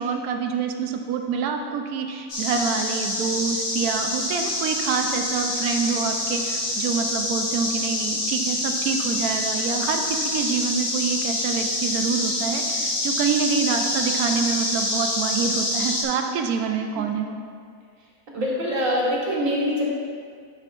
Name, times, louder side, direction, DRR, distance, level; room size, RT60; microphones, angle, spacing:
voice 1, 0.0-17.4, right 6 dB, 75° right, 5 dB, 1.1 m, -26 dB
sound 1, 2.3-16.0, left 1 dB, 60° left, 1.6 m, -26 dB
voice 2, 18.3-19.8, equal, 60° right, -5 dB, 1.9 m, -24 dB
11.0 x 5.8 x 2.5 m, 2.1 s
omnidirectional pair, 1.6 m